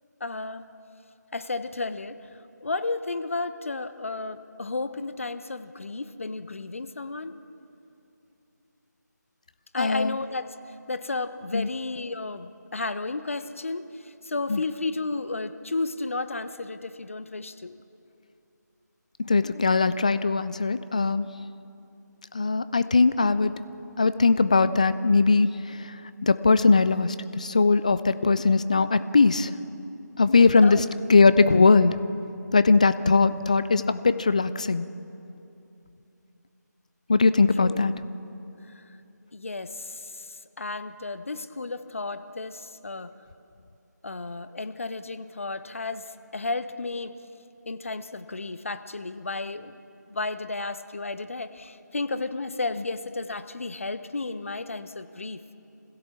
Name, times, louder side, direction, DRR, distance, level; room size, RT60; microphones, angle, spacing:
voice 1, 0.2-0.7 1.3-2.2 2.6-7.4 9.7-10.6 10.9-17.8 30.6-30.8 37.6-37.8 38.7-38.8 39.3-43.1 44.0-47.1 47.7-49.8 50.1-55.4, left 3 dB, 45° left, 12 dB, 0.9 m, -33 dB
voice 2, 9.8-10.2 11.5-11.7 14.5-14.6 19.2-21.3 22.3-23.5 24.0-26.0 26.2-29.5 30.2-30.8 31.1-32.0 32.5-34.9 37.1-37.9, left 4 dB, 25° left, 14 dB, 0.4 m, -20 dB
26.0 x 16.0 x 7.3 m, 2.8 s
figure-of-eight pair, 160°, 10 cm